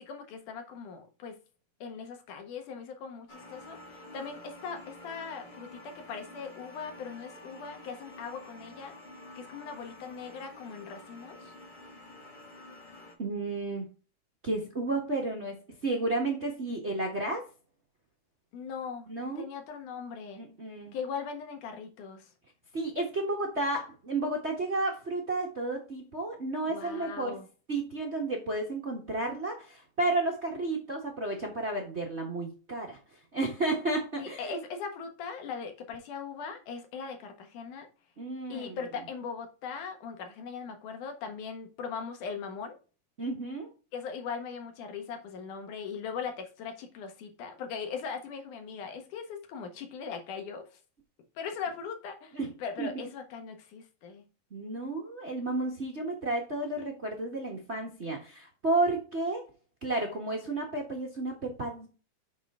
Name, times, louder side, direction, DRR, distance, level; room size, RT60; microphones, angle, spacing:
voice 1, 0.0-1.4 1.8-8.9 9.4-11.5 18.5-19.1 19.4-20.4 20.9-22.3 26.7-27.4 34.2-37.9 38.5-42.8 43.9-50.8 51.4-54.2, left 6 dB, 70° left, 2.9 m, -40 dB
sound 1, 3.3-13.1, left 2 dB, 50° left, 0.5 m, -49 dB
voice 2, 13.2-13.9 14.4-17.4 19.1-19.5 20.3-20.9 22.7-27.4 27.7-34.6 38.2-38.8 43.2-43.7 52.3-52.5 52.8-52.9 54.5-59.5 59.8-61.9, right 2 dB, 65° right, 0.6 m, -32 dB
7.3 x 6.2 x 3.6 m
omnidirectional pair, 3.7 m